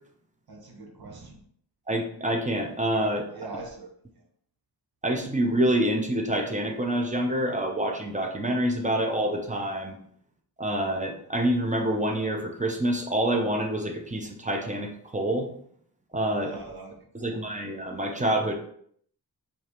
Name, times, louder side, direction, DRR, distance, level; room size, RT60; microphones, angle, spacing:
voice 1, 0.5-1.4 3.3-3.9 16.4-17.4, right 3 dB, 65° right, 1 dB, 0.9 m, -42 dB
voice 2, 1.9-3.3 5.0-10.0 10.6-15.5 16.1-16.6 17.1-18.5, right 1 dB, 20° right, 3 dB, 0.8 m, -27 dB
4.6 x 2.8 x 3.4 m, 0.65 s
cardioid pair, 60°, 40 cm